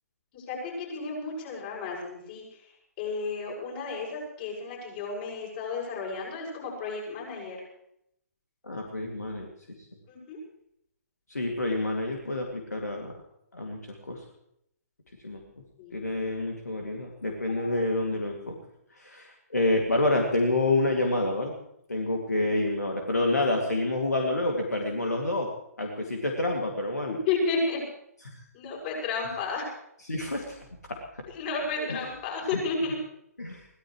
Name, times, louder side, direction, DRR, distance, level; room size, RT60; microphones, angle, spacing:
voice 1, 0.3-2.4 3.0-7.6 10.1-10.4 15.8-16.0 27.3-27.8 28.5-29.6 31.3-32.9, left 4 dB, 35° left, -1 dB, 6.6 m, -32 dB
voice 2, 8.6-9.5 11.3-13.1 13.5-13.8 14.1-14.2 15.2-15.4 15.9-18.6 19.0-21.5 21.9-25.5 25.8-27.2 28.2-28.4 30.0-31.2 31.8-32.0 32.5-32.6 33.4-33.6, left 2 dB, 75° left, 1 dB, 2.5 m, -28 dB
22.5 x 17.0 x 3.2 m, 0.75 s
figure-of-eight pair, 130°, 9 cm